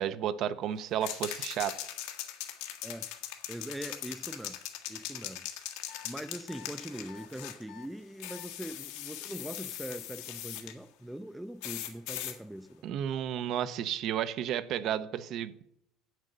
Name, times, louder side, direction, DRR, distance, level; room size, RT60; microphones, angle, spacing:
voice 1, 0.0-1.8 12.8-15.7, right 10 dB, 50° right, 0.6 m, -32 dB
sound 1, 1.0-7.6 8.2-10.7 11.6-12.4, left 12 dB, 85° left, 1.4 m, -40 dB
voice 2, 3.5-4.6 4.9-5.5 6.0-12.8, right 1 dB, 5° right, 0.4 m, -42 dB
sound 2, 5.9-6.1 6.5-6.7 7.1-7.3 7.7-7.9 8.3-8.5, left 14 dB, 60° left, 1.0 m, -50 dB
8.3 x 7.5 x 6.5 m
cardioid pair, 145°, 0 cm